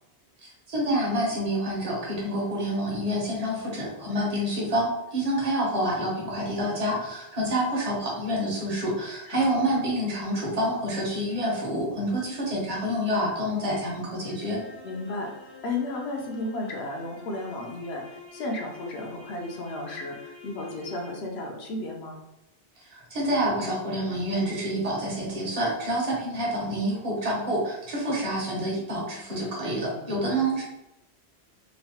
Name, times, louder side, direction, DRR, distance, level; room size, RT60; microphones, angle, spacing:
voice 1, 0.4-14.6 22.8-30.6, right 1 dB, 40° right, -4 dB, 0.8 m, -28 dB
voice 2, 9.3-9.8 14.8-22.2 29.9-30.4, left 2 dB, 70° left, 1 dB, 0.8 m, -34 dB
sound 1, 14.2-21.5, left 5 dB, 55° left, 0.4 m, -48 dB
3.0 x 2.1 x 2.8 m, 0.91 s
omnidirectional pair, 1.1 m